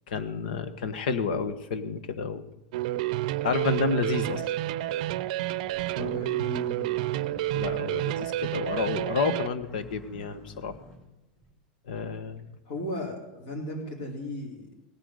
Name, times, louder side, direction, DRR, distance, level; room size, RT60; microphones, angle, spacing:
voice 1, 0.1-2.4 3.4-4.4 6.0-6.2 7.5-10.8 11.9-12.5, left 4 dB, 80° left, 11 dB, 1.6 m, -30 dB
sound 1, 2.7-9.5, right 15 dB, 55° right, 0.6 m, -29 dB
sound 2, 5.6-5.9 6.6-8.3 8.6-8.9 9.6-11.5 12.3-12.4, left 2 dB, 15° left, 3.6 m, -50 dB
voice 2, 6.0-7.5 12.7-14.9, left 1 dB, 50° left, -1 dB, 4.0 m, -37 dB
18.0 x 9.2 x 6.6 m, 0.98 s
supercardioid pair, 175°, 5 cm